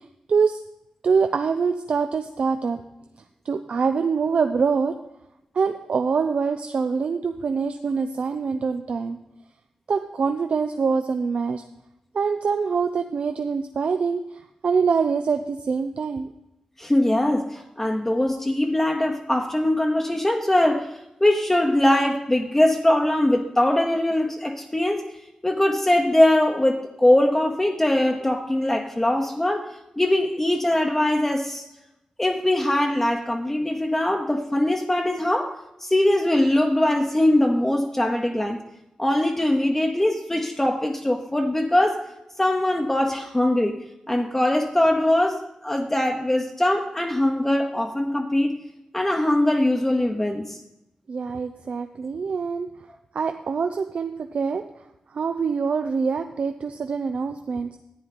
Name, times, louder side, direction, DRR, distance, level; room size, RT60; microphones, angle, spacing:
voice 1, 0.3-0.6 1.0-2.8 3.5-4.9 5.5-9.2 9.9-11.6 12.1-14.2 14.6-16.3 51.1-52.7 53.1-54.6 55.1-57.7, right 5 dB, 65° right, 7 dB, 0.5 m, -24 dB
voice 2, 16.8-20.9 21.2-25.0 25.4-29.7 30.0-31.6 32.2-35.6 35.8-38.6 39.0-42.0 42.4-43.8 44.1-48.5 48.9-50.6, left 1 dB, 15° left, 2 dB, 0.9 m, -21 dB
10.5 x 9.3 x 4.2 m, 0.89 s
wide cardioid pair, 105°, 2 cm